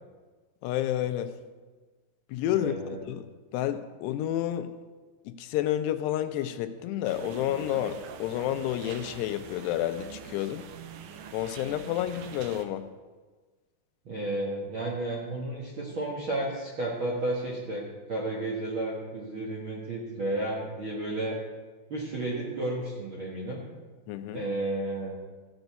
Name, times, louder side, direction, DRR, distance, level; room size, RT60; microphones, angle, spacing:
voice 1, 0.6-1.3 2.3-2.8 3.1-3.3 3.5-4.7 5.3-10.7 11.3-12.9 24.1-24.4, left 12 dB, 90° left, 10 dB, 2.8 m, -30 dB
voice 2, 2.5-3.0 14.0-21.4 21.9-23.6 24.3-25.2, right 2 dB, 60° right, -5 dB, 1.3 m, -32 dB
sound 1, 7.0-12.6, right 8 dB, 80° right, 1.9 m, -45 dB
15.0 x 5.3 x 8.0 m, 1.3 s
omnidirectional pair, 4.7 m